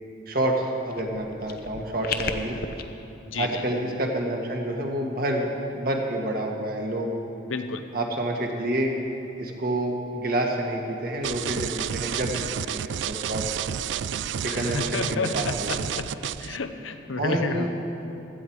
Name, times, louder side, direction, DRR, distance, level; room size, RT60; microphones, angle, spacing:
voice 1, 0.3-2.6 3.3-7.2 7.9-8.9 9.4-13.5 14.4-15.8 17.2-17.7, right 1 dB, 50° right, 1 dB, 1.7 m, -28 dB
sound 1, 0.9-2.8, left 5 dB, 50° left, 0.7 m, -34 dB
voice 2, 3.2-3.7 7.4-7.9 14.4-17.7, left 4 dB, 85° left, 8 dB, 0.9 m, -31 dB
sound 2, 11.2-16.6, right 9 dB, 65° right, 0.3 m, -30 dB
16.0 x 13.5 x 4.7 m, 2.8 s
head